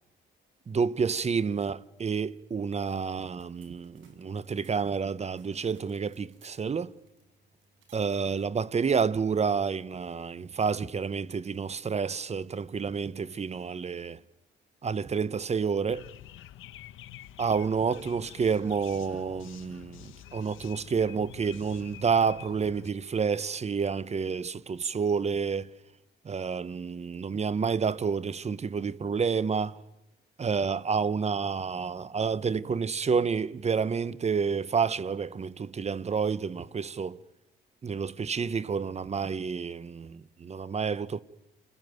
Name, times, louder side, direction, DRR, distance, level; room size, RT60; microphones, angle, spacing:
voice 1, 0.7-6.9 7.9-14.2 14.8-16.1 17.4-25.7 26.2-29.8 30.4-37.2 37.8-41.2, right 5 dB, 35° right, 0.9 m, -29 dB
sound 1, 3.0-10.4, right 5 dB, 80° right, 6.4 m, -64 dB
sound 2, 15.9-22.9, left 12 dB, 85° left, 1.2 m, -48 dB
29.5 x 21.5 x 9.4 m
cardioid pair, 90°, 20 cm